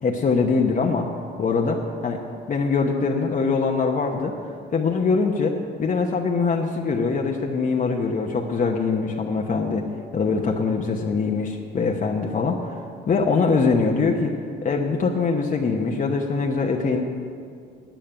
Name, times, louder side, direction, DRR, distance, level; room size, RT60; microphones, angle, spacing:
voice 1, 0.0-1.1 1.4-2.2 2.5-4.3 4.7-9.8 10.1-12.7 13.1-14.4 14.6-17.0, left 4 dB, 40° left, 0 dB, 1.0 m, -23 dB
9.1 x 9.0 x 8.7 m, 2.3 s
cardioid pair, 90°, 20 cm